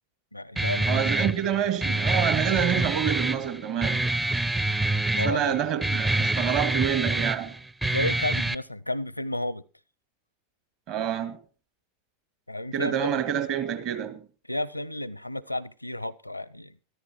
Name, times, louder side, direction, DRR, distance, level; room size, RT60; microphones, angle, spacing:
voice 1, 0.3-1.0 4.8-5.6 7.8-9.6 12.5-13.2 14.5-16.8, left 1 dB, 85° left, 0.5 m, -32 dB
Guitar, 0.6-8.6, right 2 dB, 10° right, 0.6 m, -26 dB
voice 2, 0.8-4.1 5.1-7.6 10.9-11.4 12.7-14.2, right 9 dB, 45° right, 2.0 m, -27 dB
13.5 x 13.5 x 4.4 m
figure-of-eight pair, 85°, 0 cm